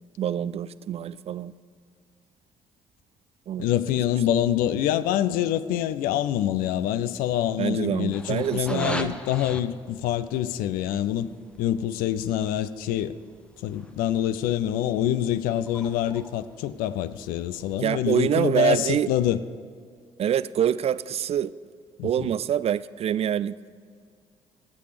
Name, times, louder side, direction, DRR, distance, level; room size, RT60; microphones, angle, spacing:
voice 1, 0.2-1.5 3.5-3.7 7.6-9.2 17.8-19.1 20.2-21.5 22.0-23.5, right 9 dB, 40° right, 0.4 m, -25 dB
voice 2, 3.6-11.3 11.6-13.1 13.6-19.4 22.0-22.3, left 11 dB, 60° left, 0.5 m, -26 dB
sound 1, 8.1-17.8, left 1 dB, 5° left, 0.9 m, -42 dB
23.0 x 8.5 x 3.3 m
figure-of-eight pair, 45°, 16 cm